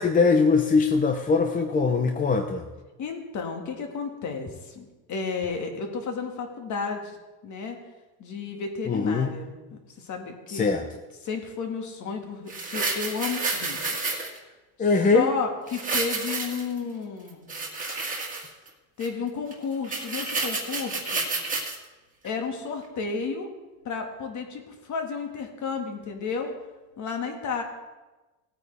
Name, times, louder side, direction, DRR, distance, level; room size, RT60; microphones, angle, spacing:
voice 1, 0.0-2.6 8.9-9.3 10.5-10.8 14.8-15.3, left 4 dB, 20° left, 4 dB, 0.7 m, -21 dB
voice 2, 3.0-7.2 7.4-7.8 8.2-9.5 10.0-10.7 11.2-14.1 14.8-14.9 15.1-17.5 19.0-21.3 22.2-23.5 23.8-26.5 27.0-27.6, left 5 dB, 40° left, 3 dB, 2.0 m, -32 dB
sound 1, 12.5-14.4 15.7-16.8 17.3-18.7 19.0-19.1 19.5-19.6 19.8-21.8 22.2-22.3, right 3 dB, 20° right, 1.9 m, -30 dB
17.5 x 9.0 x 3.4 m, 1.2 s
supercardioid pair, 130°, 43 cm